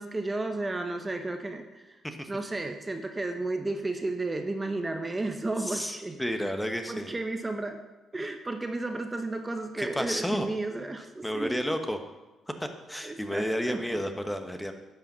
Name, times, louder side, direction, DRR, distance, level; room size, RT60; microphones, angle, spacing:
voice 1, 0.0-2.0 2.3-6.2 6.9-7.8 8.1-11.8 13.0-14.0, right 2 dB, 20° right, 5 dB, 0.9 m, -33 dB
voice 2, 5.6-7.1 9.7-10.5 11.2-12.0 12.6-14.7, equal, 5° left, 6 dB, 1.1 m, -31 dB
11.0 x 5.6 x 7.3 m, 1.1 s
cardioid pair, 90°, 0 cm